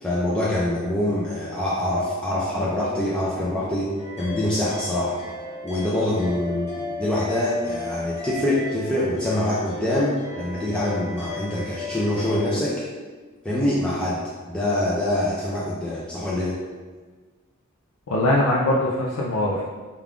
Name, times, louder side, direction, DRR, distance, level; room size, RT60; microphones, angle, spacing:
voice 1, 0.0-5.2 5.6-12.8 13.4-14.2 14.5-16.6, left 1 dB, 5° left, -7 dB, 0.4 m, -25 dB
sound 1, 4.0-12.5, left 2 dB, 30° left, 0.8 m, -35 dB
voice 2, 18.1-19.6, left 1 dB, 85° left, -4 dB, 0.4 m, -21 dB
3.5 x 2.3 x 3.5 m, 1.4 s
head